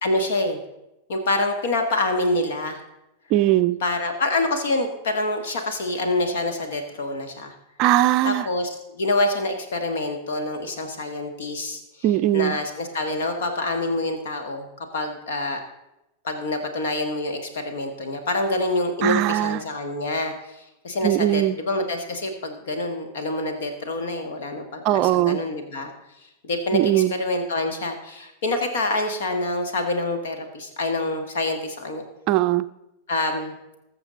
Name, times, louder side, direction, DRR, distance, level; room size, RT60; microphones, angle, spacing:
voice 1, 0.0-0.6 1.1-2.8 3.8-7.5 8.2-11.8 12.3-15.6 16.2-25.9 26.4-32.0 33.1-33.6, left 2 dB, 60° left, 6 dB, 1.6 m, -26 dB
voice 2, 3.3-3.8 7.8-8.5 12.0-12.6 19.0-19.6 21.0-21.6 24.8-25.4 26.7-27.1 32.3-32.6, right 14 dB, 40° right, 12 dB, 0.5 m, -20 dB
20.5 x 6.9 x 3.9 m, 0.90 s
figure-of-eight pair, 90°, 0 cm